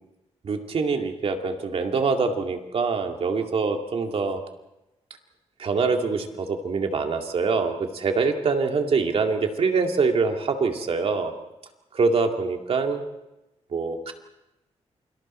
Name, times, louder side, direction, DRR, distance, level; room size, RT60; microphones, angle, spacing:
voice 1, 0.4-4.4 5.6-11.3 11.9-13.0 13.7-14.1, right 4 dB, 55° right, 4 dB, 2.3 m, -24 dB
28.5 x 25.5 x 4.4 m, 0.95 s
wide cardioid pair, 145°, 12 cm